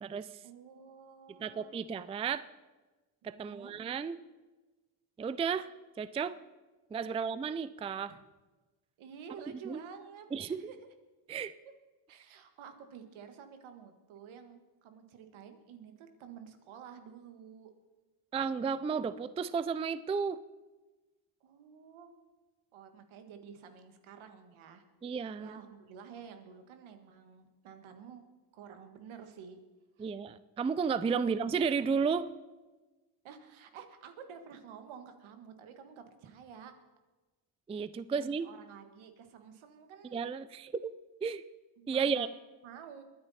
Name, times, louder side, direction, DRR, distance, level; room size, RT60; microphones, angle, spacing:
voice 1, 0.4-1.8 3.3-3.8 7.1-7.2 8.1-8.2 9.0-10.8 12.1-17.7 21.4-22.1 22.7-24.8 25.4-28.2 28.5-29.6 30.0-30.1 31.2-31.3 33.2-36.7 38.1-40.2 41.8-42.3 42.6-43.0, right 7 dB, 80° right, 7 dB, 1.7 m, -51 dB
voice 2, 1.4-2.4 3.2-4.2 5.2-5.7 6.0-6.4 6.9-8.2 9.7-9.8 10.3-10.6 11.3-11.5 18.3-20.4 25.0-25.6 30.0-32.3 37.7-38.5 40.1-40.9 41.2-41.4 41.9-42.3, right 6 dB, 15° right, 15 dB, 0.3 m, -33 dB
21.5 x 9.7 x 4.2 m, 1.2 s
cardioid pair, 90°, 47 cm